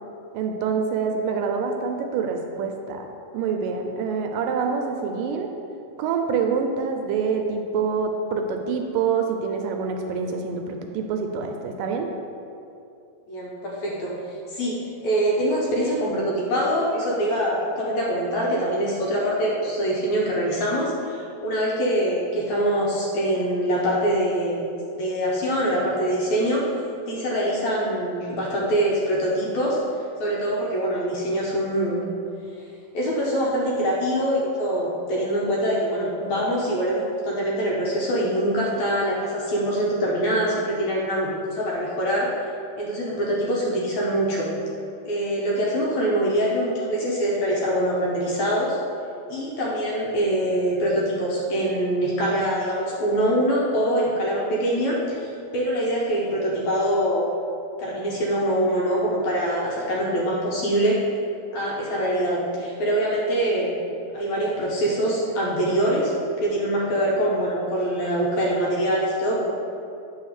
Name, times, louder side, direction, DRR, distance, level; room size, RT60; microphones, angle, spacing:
voice 1, 0.3-3.1 3.3-5.5 6.0-12.1, right 5 dB, 80° right, 3 dB, 2.2 m, -26 dB
voice 2, 13.3-14.1 14.5-24.6 24.9-26.7 27.1-29.8 30.2-32.0 32.6-32.7 32.9-42.4 42.8-44.5 45.0-48.8 49.3-57.3 57.8-61.0 61.5-63.8 64.1-66.1 66.4-69.5, right 1 dB, 65° left, -4 dB, 2.0 m, -24 dB
8.9 x 3.9 x 6.5 m, 2.6 s
omnidirectional pair, 4.0 m